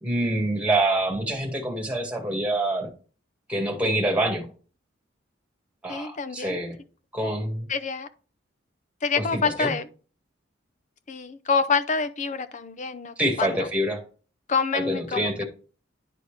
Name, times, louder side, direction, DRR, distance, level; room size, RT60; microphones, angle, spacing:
voice 1, 0.0-2.9 3.5-4.5 5.8-6.8 7.1-7.7 9.2-9.7 13.2-14.0 14.7-15.4, right 1 dB, 5° right, 1.9 m, -26 dB
voice 2, 5.9-6.6 7.7-8.1 9.0-9.9 11.1-13.7 14.5-15.4, left 5 dB, 40° left, 0.6 m, -27 dB
10.5 x 4.2 x 3.4 m
head